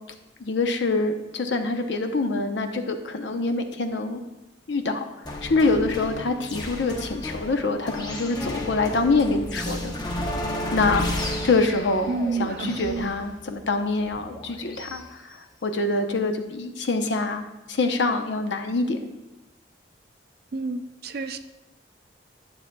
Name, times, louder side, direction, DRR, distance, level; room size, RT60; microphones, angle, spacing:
voice 1, 0.4-4.2 4.7-5.1 5.4-9.9 10.7-11.0 11.4-12.1 12.3-17.4 17.7-19.0, left 3 dB, 70° left, 6 dB, 0.7 m, -25 dB
sound 1, 5.3-15.0, left 1 dB, 20° left, 0.8 m, -32 dB
voice 2, 12.1-13.1 20.5-21.4, right 4 dB, 55° right, 9 dB, 0.4 m, -29 dB
11.5 x 6.8 x 2.2 m, 0.97 s
head